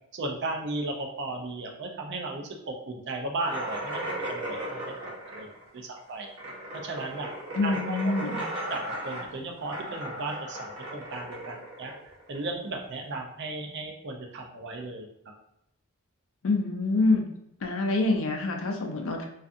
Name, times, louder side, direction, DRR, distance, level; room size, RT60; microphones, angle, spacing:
voice 1, 0.1-6.3 6.8-7.3 7.6-8.1 8.7-11.9 12.3-15.3, right 2 dB, 50° right, 2 dB, 0.4 m, -36 dB
sound 1, 3.4-12.8, right 1 dB, 70° right, 0.8 m, -36 dB
voice 2, 7.5-8.4 16.4-17.3 17.6-19.2, left 2 dB, 60° left, 3 dB, 0.5 m, -26 dB
2.5 x 2.4 x 2.5 m, 0.81 s
head